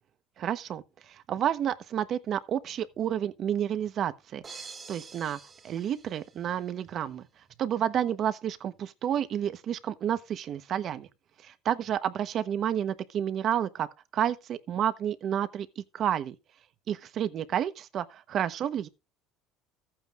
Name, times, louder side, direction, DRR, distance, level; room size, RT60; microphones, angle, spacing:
voice 1, 0.4-4.4 4.9-7.2 7.6-11.1 11.4-13.9 14.1-16.4 16.9-18.9, right 9 dB, 45° right, 1.1 m, -30 dB
sound 1, 4.4-6.7, right 5 dB, 30° right, 2.1 m, -47 dB
14.5 x 8.8 x 2.5 m
supercardioid pair, 110°, 0 cm